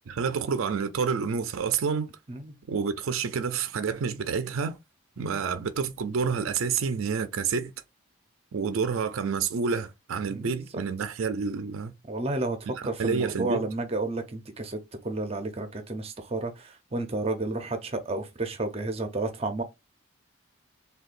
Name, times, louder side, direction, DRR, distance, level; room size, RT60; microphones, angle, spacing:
voice 1, 0.1-2.1 2.7-4.8 5.2-7.7 8.5-11.9 12.7-13.7, right 5 dB, 80° right, 0.4 m, -29 dB
voice 2, 10.3-10.8 12.1-19.6, right 2 dB, 30° right, 0.6 m, -32 dB
6.4 x 2.3 x 2.5 m
head